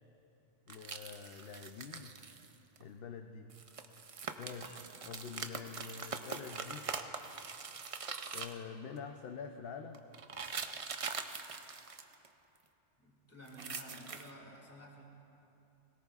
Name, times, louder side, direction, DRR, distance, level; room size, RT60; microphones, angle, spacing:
voice 1, 0.7-2.1 2.8-3.5 4.4-6.9 8.3-10.0, left 6 dB, 60° left, 5 dB, 0.7 m, -46 dB
sound 1, 0.7-2.5 2.8-2.9 3.5-8.6 9.9-12.3 13.5-14.3, right 5 dB, 45° right, 0.4 m, -43 dB
voice 2, 13.0-15.0, equal, 10° left, -2 dB, 2.0 m, -52 dB
20.5 x 18.0 x 2.4 m, 3.0 s
omnidirectional pair, 1.3 m